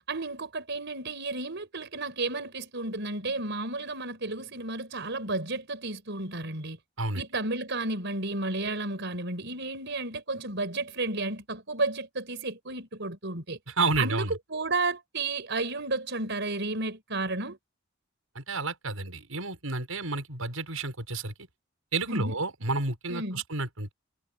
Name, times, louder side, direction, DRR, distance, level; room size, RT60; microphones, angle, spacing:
voice 1, 0.1-6.8 7.2-13.6 14.0-17.6 22.1-22.4 23.1-23.4, right 2 dB, 55° right, 5.2 m, -32 dB
voice 2, 13.8-14.3 18.3-21.3 21.9-23.9, right 3 dB, 85° right, 6.3 m, -30 dB
head